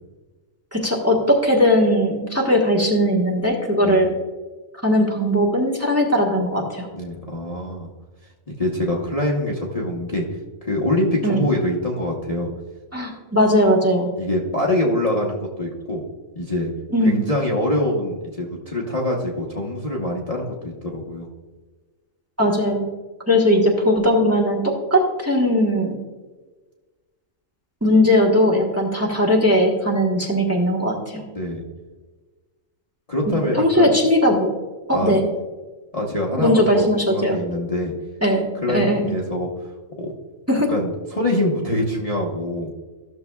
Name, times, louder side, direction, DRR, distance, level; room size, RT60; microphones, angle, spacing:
voice 1, 0.7-4.1 4.8-6.9 11.2-11.4 12.9-14.1 16.9-17.2 22.4-22.8 23.3-26.0 27.8-31.2 33.5-34.5 34.9-35.2 36.4-37.4 38.2-39.0 40.5-40.7, equal, 10° right, -2 dB, 1.2 m, -19 dB
voice 2, 6.9-7.9 8.5-10.2 10.6-12.5 14.2-16.0 16.3-16.7 17.0-21.3 31.3-31.6 33.1-33.9 34.9-35.2 35.9-37.9 38.6-39.5 40.0-40.1 40.7-42.7, left 1 dB, 30° left, -3 dB, 1.0 m, -24 dB
14.0 x 6.7 x 2.3 m, 1.3 s
omnidirectional pair, 1.4 m